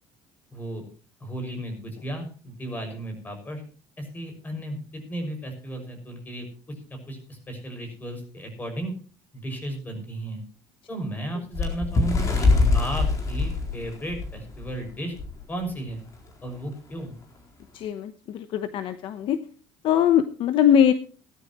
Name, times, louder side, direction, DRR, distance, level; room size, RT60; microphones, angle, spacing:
voice 1, 0.5-0.8 1.2-3.6 4.0-6.5 6.9-8.9 9.3-10.4 10.9-15.2 15.5-16.0 16.4-17.1, right 1 dB, 15° left, 5 dB, 6.3 m, -34 dB
Bird, 11.5-14.7 15.2-15.3 15.6-15.9 16.7-16.8, left 3 dB, 35° left, 4.0 m, -23 dB
voice 2, 17.7-19.4 19.8-20.9, left 9 dB, 55° left, 10 dB, 1.0 m, -21 dB
17.5 x 13.0 x 3.1 m, 0.40 s
cardioid pair, 135°, 10 cm